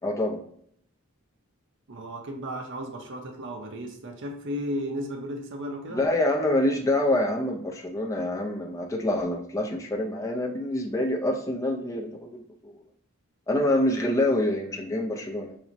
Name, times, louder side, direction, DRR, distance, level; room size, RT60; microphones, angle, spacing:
voice 1, 0.0-0.4 5.9-12.7 13.5-15.6, left 1 dB, 15° left, 0 dB, 0.3 m, -26 dB
voice 2, 1.9-6.0, equal, 60° right, 4 dB, 0.6 m, -34 dB
5.8 x 2.0 x 2.5 m, 0.67 s
head